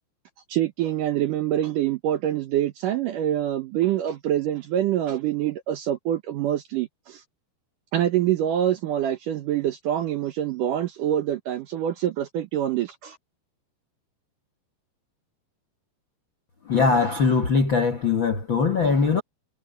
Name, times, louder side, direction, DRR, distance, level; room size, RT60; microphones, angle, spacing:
voice 1, 0.5-7.2 7.9-13.2, right 11 dB, 70° right, 2.1 m, -25 dB
voice 2, 16.7-19.2, left 5 dB, 60° left, 1.2 m, -21 dB
omnidirectional pair, 4.8 m